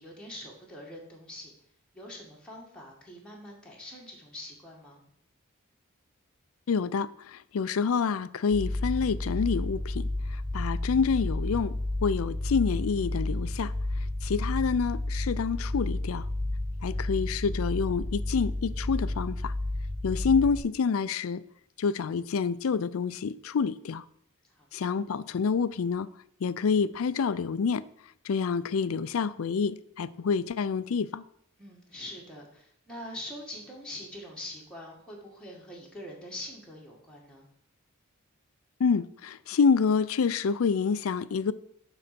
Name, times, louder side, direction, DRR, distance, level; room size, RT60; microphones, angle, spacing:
voice 1, 0.0-1.5 1.9-5.0 10.5-10.7 16.7-17.1 24.5-24.9 31.6-37.5, left 1 dB, 5° left, 1.9 m, -44 dB
voice 2, 6.7-13.7 14.2-16.3 16.8-19.5 20.0-21.4 21.8-24.0 24.7-26.1 26.4-27.8 28.2-31.2 38.8-41.5, left 5 dB, 75° left, 0.4 m, -28 dB
sound 1, 8.5-20.6, left 1 dB, 45° right, 3.7 m, -31 dB
9.9 x 4.0 x 6.8 m
head